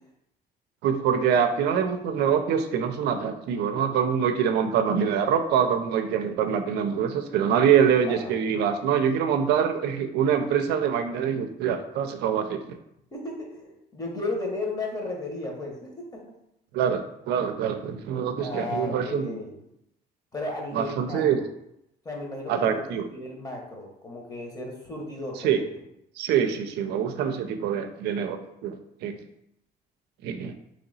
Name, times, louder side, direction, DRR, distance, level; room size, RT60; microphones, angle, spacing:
voice 1, 0.8-12.8 16.7-19.4 20.7-21.4 22.5-23.1 25.4-25.6 26.2-28.8 29.0-29.2 30.2-30.5, right 8 dB, 80° right, 7 dB, 0.5 m, -25 dB
voice 2, 13.1-16.2 18.4-19.6 20.3-21.2 22.0-25.7, left 2 dB, 20° left, 0 dB, 1.0 m, -34 dB
3.0 x 2.8 x 4.0 m, 0.79 s
cardioid pair, 110°, 17 cm